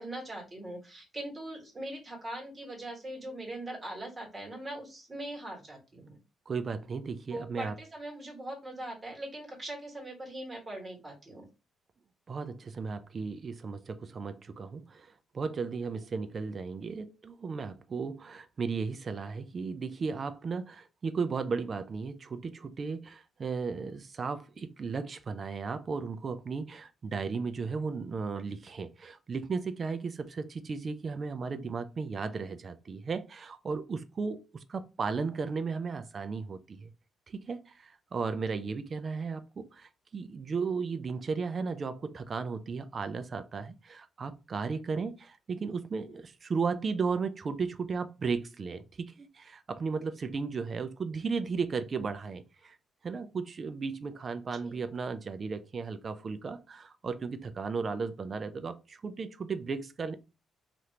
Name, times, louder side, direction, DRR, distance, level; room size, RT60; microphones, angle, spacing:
voice 1, 0.0-6.2 7.3-11.4 38.6-38.7 54.6-54.8, right 1 dB, 25° right, 1.5 m, -41 dB
voice 2, 6.5-7.7 12.3-36.9 37.3-52.8 53.0-60.2, right 5 dB, 40° right, 0.4 m, -35 dB
2.8 x 2.5 x 3.2 m
cardioid pair, 90°, 0 cm